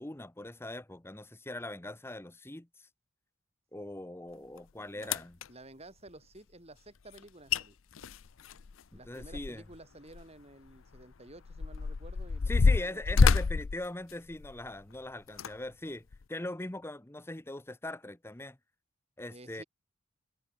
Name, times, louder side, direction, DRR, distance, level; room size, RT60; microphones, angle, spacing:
voice 1, 0.0-2.9 3.7-5.4 8.9-9.6 12.5-18.6 19.2-19.6, left 1 dB, 10° left, 0.9 m, -41 dB
sound 1, 4.6-4.7 5.0-5.5 7.2-7.3 7.5-7.6 8.0-9.8 10.1-10.2 10.9-14.7 15.3-15.5 16.1-16.2, left 4 dB, 70° left, 0.6 m, -27 dB
voice 2, 5.5-7.7 8.9-13.2 19.3-19.6, right 1 dB, 30° right, 4.9 m, -52 dB
head